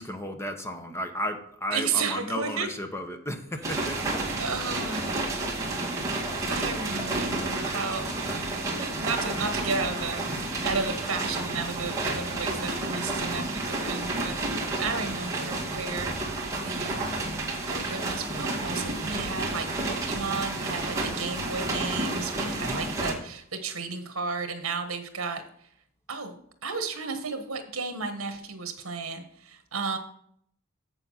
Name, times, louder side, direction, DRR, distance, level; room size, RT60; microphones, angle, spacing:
voice 1, 0.0-4.2 22.4-22.9, equal, 10° left, 6 dB, 0.9 m, -34 dB
voice 2, 1.7-2.7 4.4-5.2 6.5-14.4 14.8-16.2 16.6-17.0 17.7-25.4 26.1-26.4 26.6-30.0, right 4 dB, 70° right, 7 dB, 1.4 m, -33 dB
sound 1, 3.6-23.1, right 2 dB, 15° right, 2.1 m, -31 dB
7.9 x 7.0 x 5.6 m, 0.67 s
head